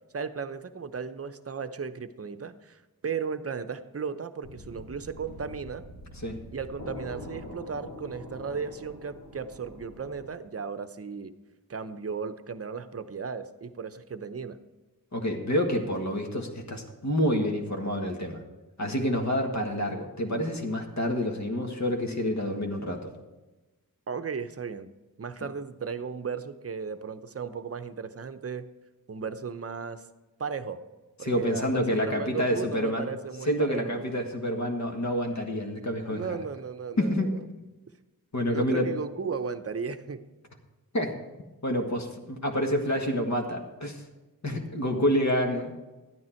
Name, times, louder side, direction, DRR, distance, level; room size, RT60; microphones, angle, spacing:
voice 1, 0.1-5.8 6.5-11.3 11.7-14.6 24.1-24.9 25.2-28.7 29.1-30.0 30.4-30.8 31.2-34.0 36.1-37.4 38.5-40.2, right 5 dB, 40° right, 10 dB, 0.8 m, -35 dB
sound 1, 4.4-10.2, left 1 dB, 80° left, 2.8 m, -44 dB
voice 2, 15.1-18.4 18.8-23.1 31.2-33.1 33.5-36.3 37.0-37.3 38.3-38.9 40.9-41.1 41.6-44.0 44.4-45.7, equal, 50° left, 2 dB, 1.7 m, -28 dB
12.0 x 9.5 x 4.4 m, 1.1 s
cardioid pair, 60°, 37 cm